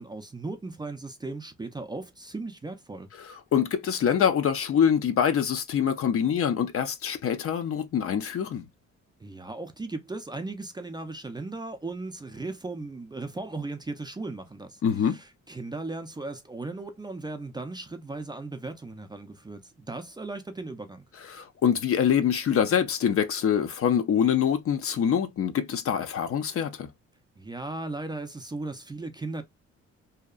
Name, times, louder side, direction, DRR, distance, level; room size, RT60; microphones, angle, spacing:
voice 1, 0.0-3.1 9.2-21.1 27.4-29.4, right 2 dB, 15° right, 0.4 m, -37 dB
voice 2, 3.2-8.7 14.8-15.2 21.3-26.9, left 8 dB, 50° left, 0.5 m, -25 dB
2.8 x 2.2 x 2.3 m
cardioid pair, 90°, 30 cm